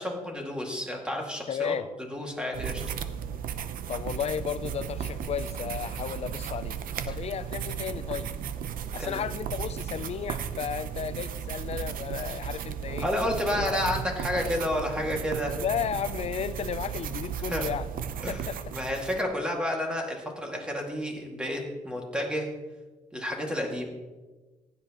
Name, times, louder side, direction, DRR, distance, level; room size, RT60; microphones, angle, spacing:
voice 1, 0.0-1.8 2.1-2.8 9.0-9.2 13.0-15.6 17.5-17.6 18.2-22.5 23.1-23.8, left 1 dB, 5° right, 2.2 m, -30 dB
voice 2, 1.5-1.9 3.9-6.8 7.1-8.3 8.9-13.1 13.5-13.8 15.6-17.9 18.3-18.6, left 8 dB, 50° left, 0.5 m, -33 dB
sound 1, 2.5-19.2, right 8 dB, 80° right, 0.7 m, -35 dB
15.5 x 10.5 x 3.0 m
cardioid pair, 120°, 14 cm